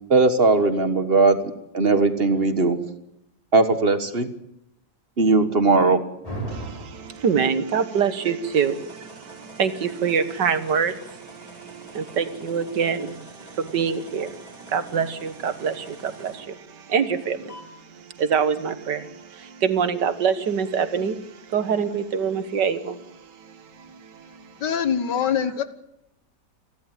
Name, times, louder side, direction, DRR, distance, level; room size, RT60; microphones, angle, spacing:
voice 1, 0.1-2.8 3.5-4.3 5.2-6.0, right 3 dB, 35° right, 10 dB, 1.6 m, -19 dB
sound 1, 6.2-7.4 8.4-16.4 17.5-17.6, right 1 dB, 20° left, 5.5 m, -42 dB
voice 2, 6.5-24.5, right 6 dB, 75° right, 12 dB, 2.0 m, -26 dB
voice 3, 24.6-25.6, left 8 dB, 75° left, 12 dB, 2.0 m, -23 dB
29.0 x 12.0 x 9.0 m, 0.82 s
omnidirectional pair, 1.9 m